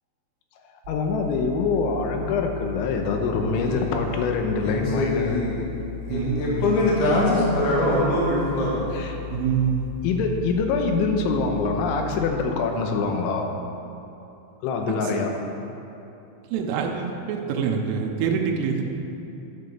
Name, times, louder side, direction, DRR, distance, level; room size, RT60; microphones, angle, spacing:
sound 1, 0.8-12.3, left 11 dB, 55° right, 1.6 m, -37 dB
voice 1, 0.9-5.5 8.9-9.2 10.0-13.5 14.6-15.3, left 4 dB, 80° left, 3 dB, 3.1 m, -25 dB
voice 2, 3.5-3.9 4.6-5.7 6.1-8.9, left 1 dB, 60° left, -6 dB, 3.4 m, -23 dB
voice 3, 6.1-6.6 9.3-9.9 16.5-18.8, right 7 dB, 85° right, 1 dB, 3.4 m, -25 dB
11.5 x 5.6 x 6.9 m, 2.9 s
omnidirectional pair, 5.7 m